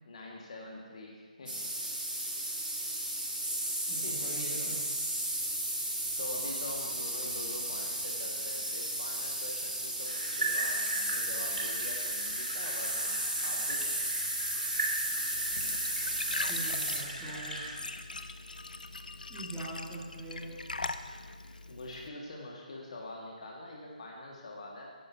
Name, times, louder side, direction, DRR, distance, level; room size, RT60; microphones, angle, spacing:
voice 1, 0.0-1.7 4.0-4.7 6.2-14.0 21.7-25.0, left 2 dB, 50° left, -1 dB, 2.0 m, -44 dB
sound 1, 1.5-17.0, right 1 dB, 90° right, 2.6 m, -34 dB
voice 2, 3.9-4.8 16.4-17.6 19.3-20.6, right 2 dB, 5° right, -10 dB, 2.1 m, -42 dB
sound 2, 10.0-17.8, right 2 dB, 70° right, 2.7 m, -38 dB
Glass / Trickle dribble / Fill (with liquid), 15.3-22.1, left 3 dB, 70° left, 0.6 m, -41 dB
13.5 x 9.9 x 2.9 m, 1.5 s
figure-of-eight pair, 145°, 5 cm